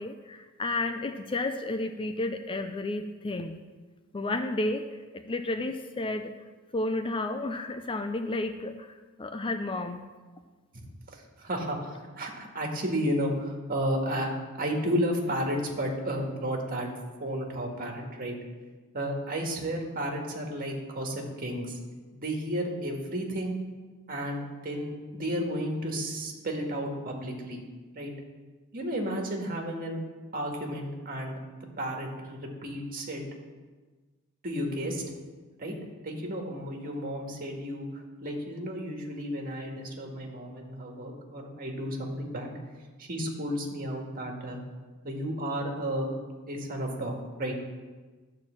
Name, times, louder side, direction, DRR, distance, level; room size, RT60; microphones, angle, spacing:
voice 1, 0.0-3.6 4.1-4.9 5.1-6.3 6.7-10.1, left 2 dB, 25° left, 7 dB, 0.5 m, -32 dB
voice 2, 11.4-14.3 14.6-16.9 17.2-18.3 18.9-21.8 22.1-23.6 24.1-27.6 27.9-28.1 28.7-30.0 30.3-31.4 31.8-33.2 34.4-35.0 35.6-35.8 36.0-42.6 43.0-44.6 45.0-46.1 46.5-47.5, equal, 40° right, 1 dB, 1.9 m, -32 dB
12.5 x 4.5 x 7.5 m, 1.3 s
head